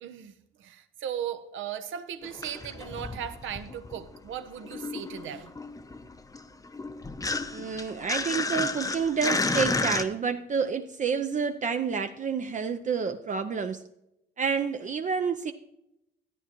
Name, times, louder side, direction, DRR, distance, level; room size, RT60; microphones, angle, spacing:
voice 1, 0.0-5.5, right 9 dB, 80° right, 0.8 m, -37 dB
sound 1, 2.2-4.2 4.4-10.0, left 3 dB, 15° left, 0.7 m, -32 dB
voice 2, 7.5-13.8 14.4-15.5, right 6 dB, 40° right, 0.5 m, -29 dB
13.5 x 9.3 x 3.0 m
cardioid pair, 90°, 20 cm